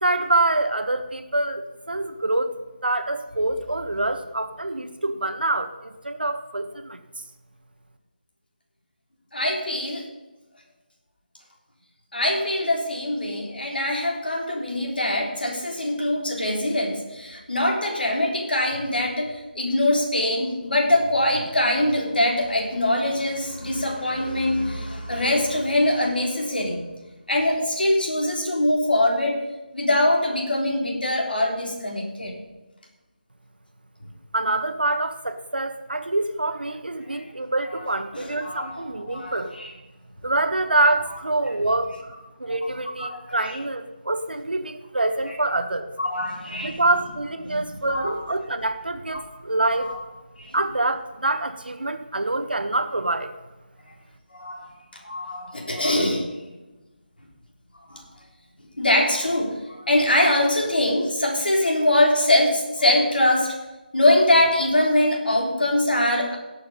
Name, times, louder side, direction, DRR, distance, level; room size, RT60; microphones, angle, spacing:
voice 1, 0.0-2.5 2.8-7.0 34.3-39.5 40.2-42.1 42.4-45.9 46.6-49.9 50.5-53.3, right 2 dB, 75° right, 8 dB, 1.3 m, -25 dB
voice 2, 9.3-10.0 12.1-26.8 27.3-29.4 29.7-32.3 38.1-39.7 43.0-43.2 43.5-43.6 46.0-46.8 47.5-47.6 47.9-48.2 49.1-49.2 49.9-50.0 50.4-50.5 54.3-54.7 55.0-56.2 57.9-58.0 58.8-63.5 63.9-66.4, left 1 dB, 70° left, 0 dB, 3.5 m, -23 dB
17.5 x 6.9 x 5.4 m, 1.1 s
figure-of-eight pair, 155°, 5 cm